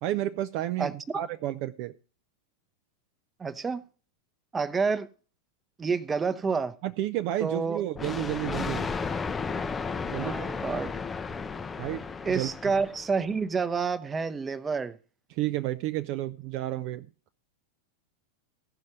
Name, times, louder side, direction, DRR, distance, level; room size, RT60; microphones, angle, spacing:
voice 1, 0.0-2.0 6.8-8.9 10.1-10.5 11.8-12.5 15.3-17.1, right 14 dB, 45° right, 0.4 m, -31 dB
voice 2, 3.4-3.8 4.5-5.1 5.8-6.8 7.4-7.8 10.1-10.9 12.2-15.0, right 5 dB, 15° right, 0.8 m, -29 dB
Thunder, 8.0-13.3, left 4 dB, 15° left, 0.5 m, -33 dB
16.0 x 5.3 x 5.9 m
figure-of-eight pair, 90°, 0 cm